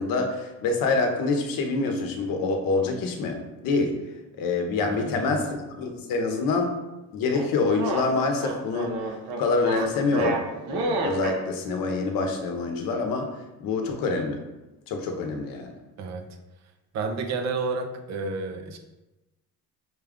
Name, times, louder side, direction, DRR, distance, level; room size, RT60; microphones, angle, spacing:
voice 1, 0.0-4.0 4.4-6.8 7.1-9.0 9.4-13.3 13.6-14.4 14.9-15.7, left 3 dB, 60° left, 4 dB, 0.7 m, -26 dB
voice 2, 4.8-5.3 16.0-16.2 16.9-18.8, right 4 dB, 45° right, 5 dB, 0.5 m, -31 dB
sound 1, 7.3-11.4, right 3 dB, 80° right, 0.8 m, -30 dB
5.7 x 2.3 x 3.5 m, 1.0 s
cardioid pair, 175°, 39 cm